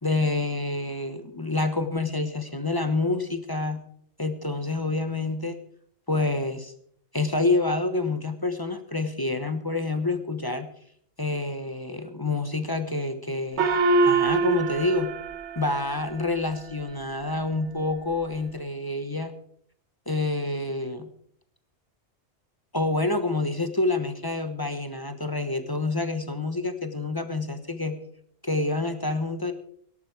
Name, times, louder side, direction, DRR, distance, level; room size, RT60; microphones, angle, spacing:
voice 1, 0.0-3.8 4.2-5.6 6.1-6.7 7.1-10.7 11.2-15.1 15.6-19.3 20.1-21.1 22.7-28.0 28.4-29.5, left 2 dB, 20° left, 9 dB, 1.1 m, -27 dB
Gong, 13.6-16.5, right 4 dB, 85° right, 1.5 m, -24 dB
17.5 x 11.0 x 4.8 m, 0.64 s
omnidirectional pair, 1.1 m